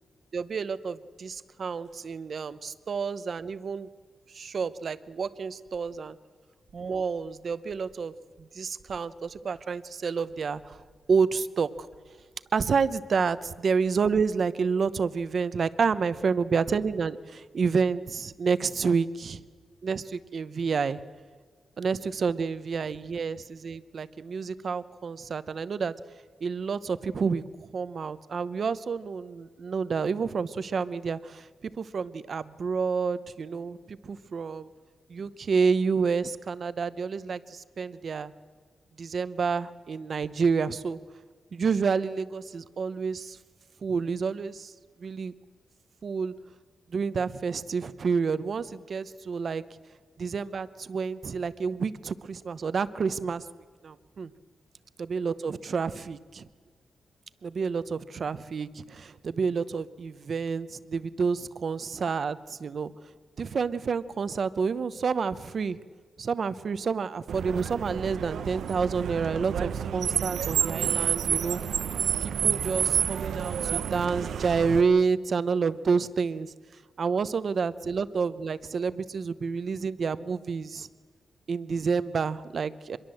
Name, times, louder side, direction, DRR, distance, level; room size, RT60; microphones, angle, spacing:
voice 1, 0.3-3.9 4.3-6.2 6.7-8.1 8.4-10.8 11.1-11.7 12.5-19.4 19.8-21.0 21.8-25.9 26.4-31.5 31.8-34.7 35.1-38.3 39.0-41.0 41.5-43.4 43.8-44.7 45.0-45.3 46.0-46.3 46.9-49.6 50.2-53.5 53.8-54.3 55.0-56.5 57.4-62.9 63.4-65.8 66.2-71.6 72.2-76.5 77.0-80.9 81.5-83.0, right 5 dB, 45° right, 14 dB, 0.8 m, -29 dB
Car, 67.3-74.8, right 8 dB, 80° right, 0.8 m, -29 dB
25.0 x 22.0 x 7.8 m, 1.5 s
wide cardioid pair, 180°, 0 cm